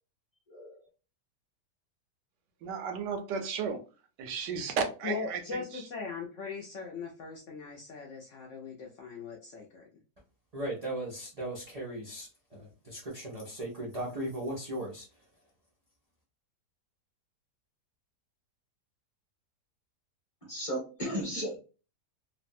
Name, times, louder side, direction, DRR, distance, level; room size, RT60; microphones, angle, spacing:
voice 1, 0.5-0.8 20.4-21.6, equal, 25° left, 0.8 m, -35 dB
voice 2, 2.6-3.8 4.2-5.8, right 6 dB, 85° right, 1.3 m, -34 dB
voice 3, 5.0-9.9, left 5 dB, 65° left, 0.7 m, -40 dB
voice 4, 10.5-15.0, right 1 dB, 60° right, 0.4 m, -37 dB
3.2 x 2.1 x 2.5 m
omnidirectional pair, 1.8 m